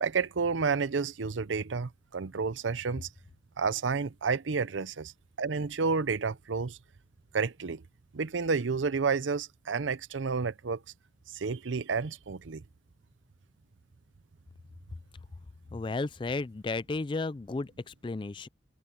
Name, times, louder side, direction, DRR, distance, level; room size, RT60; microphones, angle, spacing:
voice 1, 0.0-3.1 3.6-5.1 5.4-6.8 7.3-7.8 8.1-10.8 11.3-12.6, right 5 dB, 85° right, 0.7 m, -30 dB
voice 2, 15.7-18.5, left 3 dB, 25° left, 0.3 m, -33 dB
head